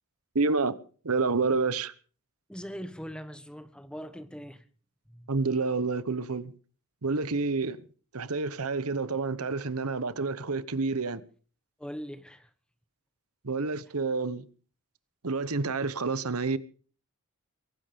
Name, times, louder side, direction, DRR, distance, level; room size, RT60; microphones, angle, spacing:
voice 1, 0.3-0.7 1.0-1.9 5.3-6.5 7.0-7.8 8.1-11.2 13.4-14.4 15.2-16.6, right 4 dB, 80° right, 1.0 m, -28 dB
voice 2, 2.5-4.6 5.1-5.3 11.8-12.5, equal, 5° left, 1.2 m, -41 dB
23.0 x 11.0 x 5.2 m
head